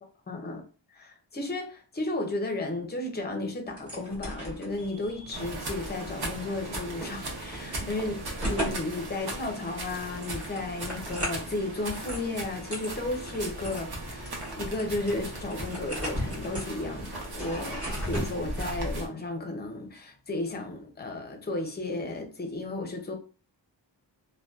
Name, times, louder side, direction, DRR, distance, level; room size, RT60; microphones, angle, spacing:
voice 1, 0.3-0.6 0.9-8.2 8.5-23.2, left 2 dB, 25° left, 0.4 m, -34 dB
sound 1, 3.7-18.3, equal, 30° right, 1.1 m, -38 dB
sound 2, 5.3-19.1, right 1 dB, 55° right, 0.7 m, -38 dB
2.5 x 2.2 x 2.3 m
wide cardioid pair, 135°, 45 cm